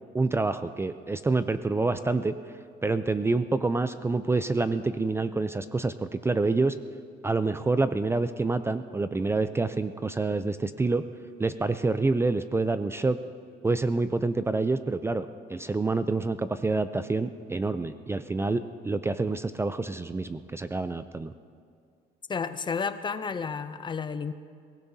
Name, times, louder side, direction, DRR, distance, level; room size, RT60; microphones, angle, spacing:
voice 1, 0.1-2.3 2.8-6.7 7.2-11.0 11.4-13.2 13.6-21.3, right 3 dB, 15° right, 11 dB, 0.4 m, -27 dB
voice 2, 22.3-24.3, left 5 dB, 30° left, 11 dB, 0.6 m, -31 dB
23.0 x 16.0 x 2.8 m, 2.2 s
cardioid pair, 110°, 17 cm